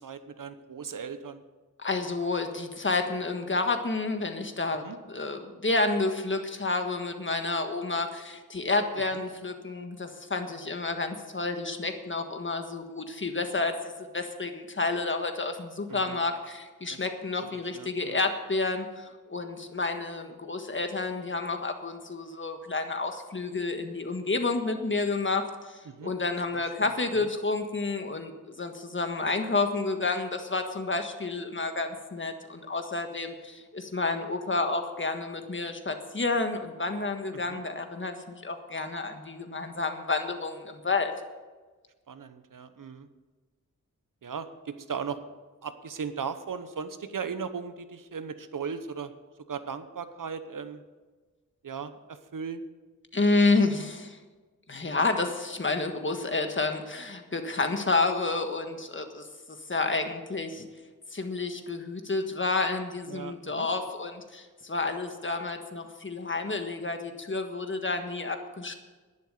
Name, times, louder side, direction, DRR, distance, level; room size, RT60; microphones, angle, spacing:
voice 1, 0.0-1.4 4.8-5.0 9.1-9.2 15.9-16.2 16.9-17.1 17.4-18.2 25.9-26.1 26.5-26.9 27.2-27.3 37.3-37.6 42.1-43.1 44.2-45.2 45.6-49.1 49.5-50.8 51.6-52.6 63.1-63.7, right 6 dB, 75° right, 11 dB, 1.0 m, -37 dB
voice 2, 1.8-41.1 53.1-54.2 54.7-60.7 61.1-68.7, left 3 dB, 35° left, 6 dB, 1.5 m, -30 dB
11.0 x 11.0 x 6.6 m, 1.3 s
wide cardioid pair, 85°, 33 cm